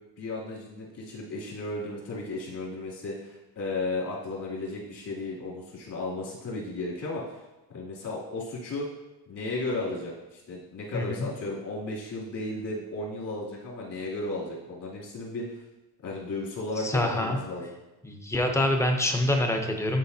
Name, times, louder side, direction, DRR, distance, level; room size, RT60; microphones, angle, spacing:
voice 1, 0.2-7.4 7.7-8.9 9.3-15.6 16.0-17.7, left 2 dB, 55° left, -5 dB, 2.8 m, -34 dB
voice 2, 10.9-11.3 16.8-17.4 18.0-20.0, left 1 dB, 5° left, 3 dB, 0.6 m, -26 dB
11.0 x 5.0 x 2.7 m, 0.99 s
cardioid pair, 165°, 39 cm